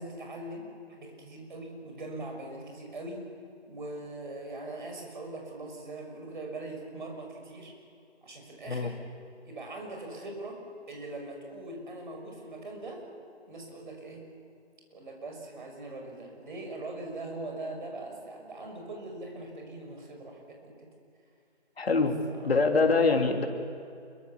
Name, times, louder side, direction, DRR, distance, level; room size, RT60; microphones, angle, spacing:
voice 1, 0.0-3.3 3.7-7.7 8.2-9.0 9.4-10.6 10.9-13.0 13.5-14.2 14.9-20.9 22.3-22.6, right 2 dB, 45° right, 2 dB, 6.2 m, -41 dB
voice 2, 21.8-23.4, left 3 dB, 60° left, 3 dB, 3.4 m, -24 dB
27.5 x 23.5 x 7.3 m, 2.6 s
hypercardioid pair, 175°, 34 cm